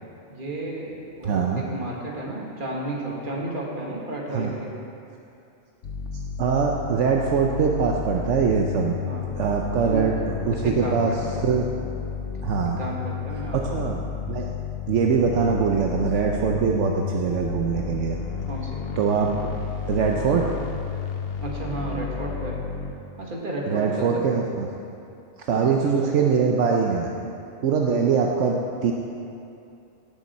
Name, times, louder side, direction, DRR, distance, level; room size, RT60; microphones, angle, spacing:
voice 1, 0.3-4.8 9.0-9.3 9.9-10.1 10.5-11.5 12.6-14.0 18.5-18.9 21.4-22.7 23.2-24.1 25.5-26.4, right 1 dB, 45° right, -3 dB, 1.9 m, -33 dB
voice 2, 1.2-1.6 4.3-4.5 6.4-9.0 9.3-11.7 12.4-12.8 13.5-14.0 14.3-14.6 14.9-18.2 19.0-19.5 19.9-20.6 23.7-24.7 25.4-27.1 27.6-28.9, right 6 dB, 75° right, 0 dB, 1.1 m, -23 dB
Growling Analog Drone, 5.8-22.9, left 6 dB, 55° left, 0.9 m, -32 dB
17.5 x 7.1 x 4.2 m, 2.6 s
omnidirectional pair, 1.3 m